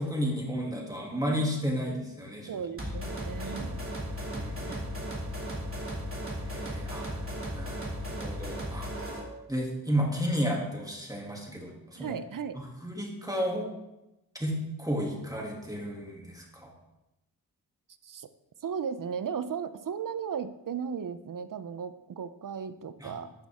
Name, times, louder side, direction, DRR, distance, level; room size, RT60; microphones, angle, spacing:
voice 1, 0.0-2.6 3.4-3.6 4.3-4.8 6.5-7.2 7.5-8.9 9.5-11.7 12.0-12.2 12.5-13.7 14.3-16.7 23.0-23.1, equal, 10° right, -1 dB, 2.7 m, -32 dB
voice 2, 2.5-3.8 4.7-4.8 12.0-12.6 18.0-18.3 18.6-23.3, right 7 dB, 60° right, 12 dB, 0.7 m, -36 dB
sound 1, 2.8-9.3, equal, 35° right, 2.7 m, -36 dB
11.5 x 6.1 x 3.7 m, 0.96 s
cardioid pair, 50°, 38 cm